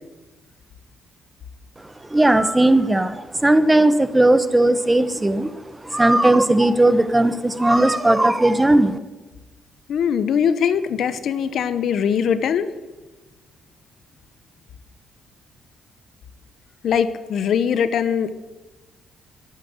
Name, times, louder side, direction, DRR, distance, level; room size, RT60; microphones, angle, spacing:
voice 1, 2.1-5.5 5.8-9.0, right 1 dB, 15° right, 12 dB, 1.1 m, -17 dB
voice 2, 9.9-12.7 16.8-18.3, left 7 dB, 65° left, 13 dB, 1.0 m, -21 dB
13.0 x 11.5 x 8.0 m, 1.2 s
cardioid pair, 90°, 0 cm